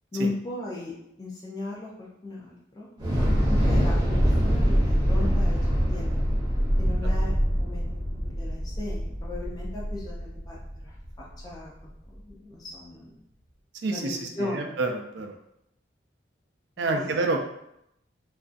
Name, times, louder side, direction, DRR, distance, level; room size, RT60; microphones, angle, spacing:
voice 1, 0.1-0.9 1.2-2.9 3.5-5.6 5.9-6.2 6.8-10.6 10.8-10.9 11.4-11.7 12.1-13.2 13.9-14.7 16.8-17.2, left 2 dB, 20° left, -5 dB, 0.4 m, -36 dB
Thunder / Explosion, 3.0-11.2, equal, 25° right, 0.6 m, -24 dB
voice 2, 13.8-15.4 16.8-17.4, right 3 dB, 70° right, 3 dB, 0.4 m, -28 dB
2.5 x 2.2 x 2.4 m, 0.80 s
head